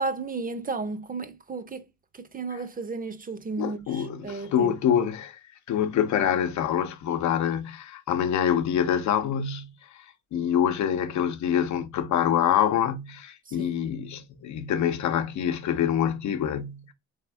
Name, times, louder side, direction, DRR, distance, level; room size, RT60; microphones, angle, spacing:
voice 1, 0.0-1.9 2.1-4.7 13.5-13.7, right 3 dB, 30° right, 0.6 m, -33 dB
voice 2, 3.6-5.4 5.7-10.1 10.3-16.9, left 9 dB, 70° left, 0.7 m, -26 dB
3.5 x 3.4 x 3.3 m
cardioid pair, 90°, 30 cm